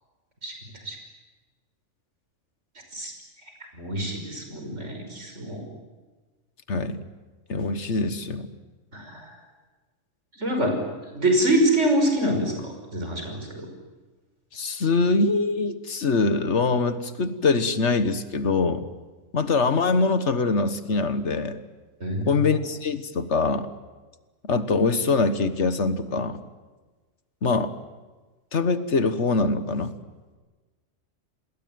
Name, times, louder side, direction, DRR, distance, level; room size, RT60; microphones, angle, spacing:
voice 1, 3.7-5.6 8.9-9.3 10.4-10.7 11.1-13.7 22.0-22.3, right 1 dB, 70° right, 4 dB, 6.1 m, -25 dB
voice 2, 6.7-7.0 7.5-8.5 14.5-18.9 19.3-21.6 22.3-23.7 24.4-26.4 27.4-27.7 28.5-29.9, left 3 dB, 65° left, 11 dB, 1.7 m, -23 dB
28.0 x 20.5 x 9.4 m, 1.3 s
omnidirectional pair, 1.3 m